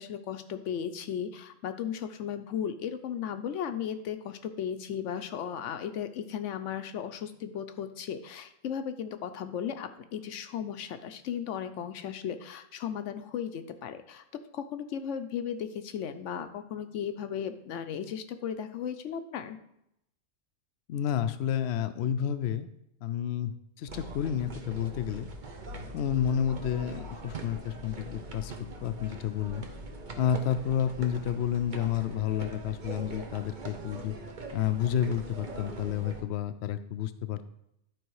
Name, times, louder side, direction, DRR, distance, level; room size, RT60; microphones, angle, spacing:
voice 1, 0.0-14.2 14.5-19.6, left 8 dB, 85° left, 9 dB, 1.0 m, -36 dB
voice 2, 20.9-22.7 23.0-25.3 25.9-28.5 28.8-29.7 30.2-34.2 34.5-37.5, left 9 dB, 65° left, 11 dB, 0.8 m, -30 dB
sound 1, 23.9-36.2, right 2 dB, 45° right, 1.0 m, -42 dB
11.0 x 4.5 x 4.7 m, 0.78 s
omnidirectional pair, 1.2 m